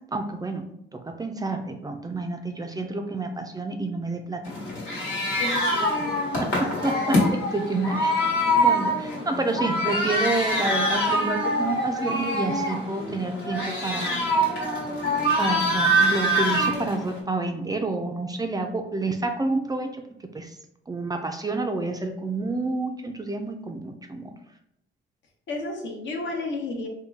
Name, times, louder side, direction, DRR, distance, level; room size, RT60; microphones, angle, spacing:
voice 1, 0.1-0.7 0.9-4.4 6.0-6.1 6.4-8.1 8.5-14.2 15.4-20.6 20.9-24.3, right 2 dB, 20° right, 5 dB, 0.4 m, -29 dB
sound 1, 4.4-17.2, equal, 85° left, 1.3 m, -24 dB
voice 2, 5.4-5.9 25.5-26.9, left 2 dB, 70° left, 1 dB, 0.9 m, -32 dB
3.7 x 2.2 x 3.3 m, 0.77 s
cardioid pair, 90°, 20 cm